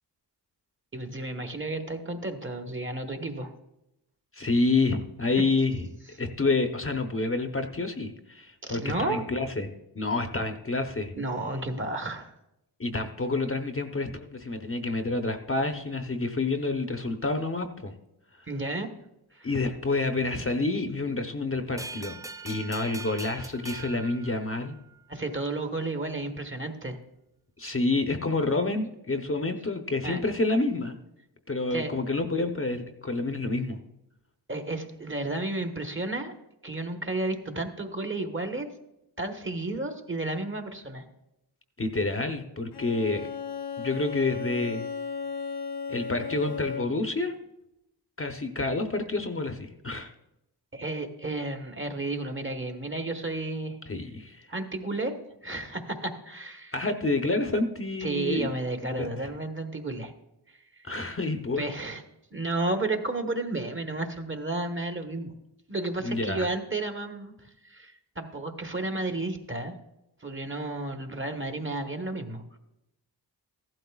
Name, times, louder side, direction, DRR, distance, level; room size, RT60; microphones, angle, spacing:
voice 1, 0.9-3.5 8.6-9.2 11.2-12.3 18.5-18.9 19.3-19.5 25.1-27.0 30.0-30.2 31.7-31.9 34.5-36.3 36.6-38.7 39.2-41.0 50.7-53.8 54.5-55.2 55.4-56.8 58.0-60.1 60.5-60.9 61.6-62.0 62.3-65.3 65.7-69.7 70.2-72.6, right 2 dB, 30° right, 5 dB, 1.2 m, -32 dB
voice 2, 4.3-5.9 6.2-11.1 12.8-17.9 19.4-22.2 22.4-24.8 27.6-30.9 31.5-33.8 41.8-43.3 43.8-44.9 45.9-47.3 48.2-50.1 53.9-54.5 56.7-58.5 59.0-59.1 60.9-61.6 66.0-66.5, left 3 dB, 30° left, 6 dB, 0.8 m, -28 dB
sound 1, 21.8-25.0, right 3 dB, 10° right, 0.3 m, -42 dB
Bowed string instrument, 42.7-47.1, left 5 dB, 65° left, 0.8 m, -35 dB
15.0 x 12.0 x 2.3 m, 0.87 s
wide cardioid pair, 80°, 42 cm